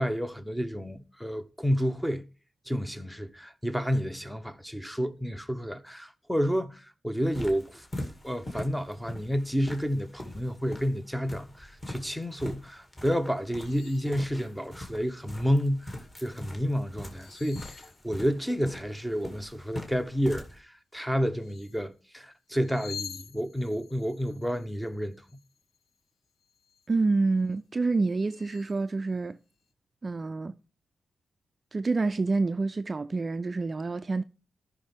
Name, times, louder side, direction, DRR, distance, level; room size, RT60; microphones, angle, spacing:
voice 1, 0.0-2.2 2.7-25.1, equal, ahead, 0.8 m, -30 dB
sound 1, 7.2-20.6, left 1 dB, 20° left, 2.2 m, -43 dB
sound 2, 13.6-14.3 14.7-15.4 17.0-18.7 21.3-21.9 22.5-26.0 26.4-26.9 27.5-27.6 28.1-28.8, left 8 dB, 70° left, 0.6 m, -48 dB
voice 2, 26.9-29.4 30.0-30.5 31.7-34.2, right 3 dB, 30° right, 0.4 m, -27 dB
14.5 x 5.8 x 3.5 m
wide cardioid pair, 140°, 0 cm